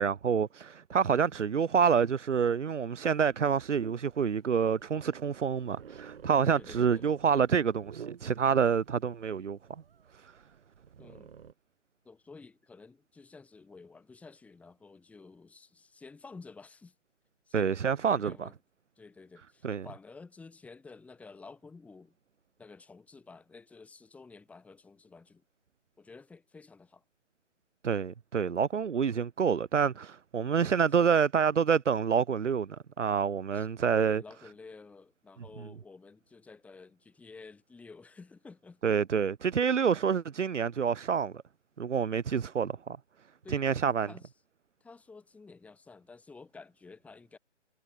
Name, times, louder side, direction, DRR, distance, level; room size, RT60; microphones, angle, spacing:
voice 1, 0.0-9.6 10.1-10.3 17.5-18.5 19.6-19.9 27.8-34.2 38.8-41.4 41.8-43.0 43.5-44.1, right 7 dB, 75° right, 1.1 m, -27 dB
sound 1, 3.0-11.5, right 7 dB, 50° right, 4.9 m, -51 dB
voice 2, 6.5-7.1 11.0-11.3 12.0-16.9 17.5-18.5 19.0-22.2 22.6-25.4 26.0-27.0 33.5-38.9 43.4-44.3 44.8-47.4, left 4 dB, 5° left, 3.1 m, -51 dB
hypercardioid pair, 155°, 37 cm